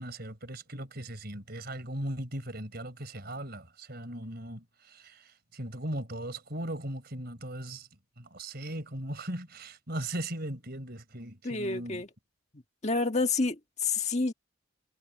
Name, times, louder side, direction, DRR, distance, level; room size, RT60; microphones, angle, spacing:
voice 1, 0.0-7.9 8.2-12.0, right 1 dB, 50° right, 4.5 m, -38 dB
voice 2, 11.4-12.1 12.8-14.3, left 3 dB, 35° left, 1.6 m, -29 dB
head